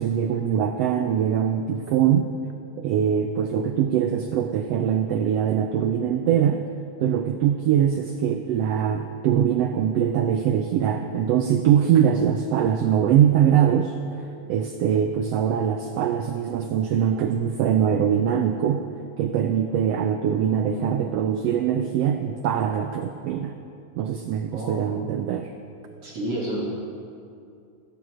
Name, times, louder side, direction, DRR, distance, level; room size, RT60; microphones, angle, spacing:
voice 1, 0.0-2.4 2.8-6.7 7.0-14.0 14.5-18.9 19.2-23.6 24.0-25.5, right 9 dB, 80° right, 6 dB, 1.4 m, -22 dB
voice 2, 20.4-21.2 24.5-25.0 26.0-26.6, right 1 dB, 55° right, -5 dB, 2.7 m, -32 dB
15.5 x 8.8 x 6.2 m, 2.5 s
omnidirectional pair, 3.4 m